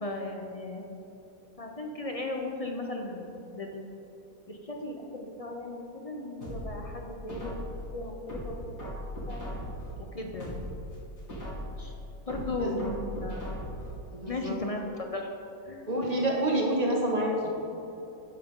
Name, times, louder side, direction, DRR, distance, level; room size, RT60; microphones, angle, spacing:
voice 1, 0.0-0.8 1.6-4.0 4.5-7.6 7.9-8.6 8.8-8.9 9.3-9.5 10.0-10.5 11.8-11.9 12.3-13.4 14.3-15.3 15.7-15.9, left 2 dB, 40° left, 2 dB, 0.5 m, -36 dB
sound 1, 6.4-7.8 8.3-9.9 10.3-11.8 12.3-13.9 14.3-14.4, equal, 60° left, 3.5 m, -38 dB
voice 2, 12.3-12.7 14.1-14.6 15.9-17.5, right 1 dB, 20° right, -1 dB, 1.6 m, -28 dB
13.0 x 9.5 x 3.8 m, 2.9 s
omnidirectional pair, 2.0 m